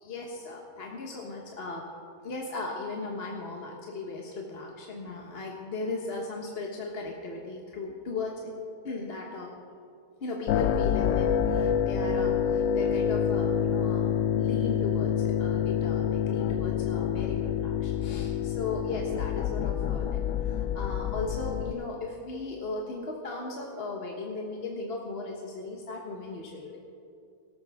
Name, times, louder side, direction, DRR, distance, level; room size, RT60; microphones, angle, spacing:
voice 1, 0.0-1.9 2.2-8.5 8.8-9.5 10.2-26.8, left 3 dB, 45° left, 0 dB, 1.3 m, -37 dB
sound 1, 10.5-21.7, left 8 dB, 70° left, 0.9 m, -27 dB
18.5 x 13.5 x 3.5 m, 2.4 s
omnidirectional pair, 1.5 m